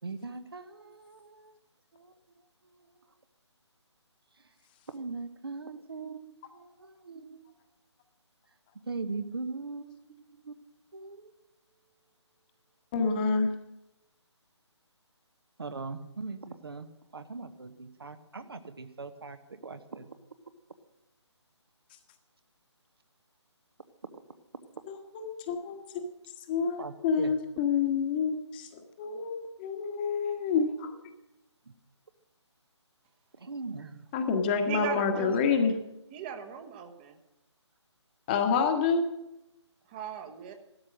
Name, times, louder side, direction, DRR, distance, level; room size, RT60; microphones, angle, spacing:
voice 1, 0.0-1.5 1.9-2.1 4.9-7.4 8.9-10.0 10.4-10.5 10.9-11.3 15.6-16.9 17.1-20.1 26.8-27.3 33.4-34.0, right 4 dB, 55° right, 9 dB, 1.2 m, -40 dB
voice 2, 12.9-13.5 24.9-26.0 26.5-30.9 34.1-35.7 38.3-39.1, left 5 dB, 20° left, 5 dB, 1.4 m, -28 dB
voice 3, 34.6-35.4 36.1-37.2 39.9-40.5, right 8 dB, 20° right, 6 dB, 1.2 m, -38 dB
15.5 x 13.0 x 6.3 m, 0.90 s
figure-of-eight pair, 145°, 15 cm